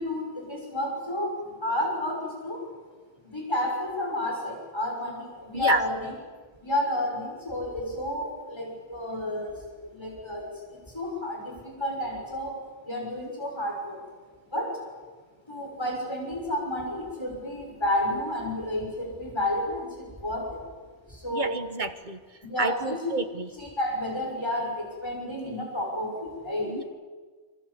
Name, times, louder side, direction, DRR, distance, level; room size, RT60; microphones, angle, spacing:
voice 1, 0.0-2.7 3.2-6.1 6.6-14.0 14.5-14.8 15.5-20.6 21.1-21.6 22.4-23.2 23.5-26.8, left 1 dB, 25° left, -1 dB, 6.4 m, -31 dB
voice 2, 21.3-22.2 22.6-23.5 26.7-26.8, right 3 dB, 45° right, 9 dB, 1.7 m, -29 dB
26.0 x 24.5 x 8.6 m, 1.4 s
omnidirectional pair, 1.1 m